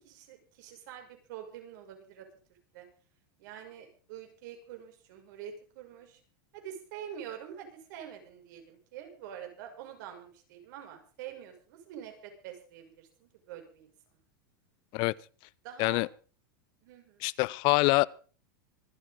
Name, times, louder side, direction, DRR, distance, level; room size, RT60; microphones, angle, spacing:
voice 1, 0.0-2.3 2.7-2.9 3.4-6.2 6.5-13.9 15.6-16.0 16.8-17.3, right 9 dB, 65° right, 5.9 m, -46 dB
voice 2, 17.2-18.1, left 24 dB, 45° left, 0.6 m, -25 dB
25.5 x 8.9 x 3.7 m
supercardioid pair, 135°, 11 cm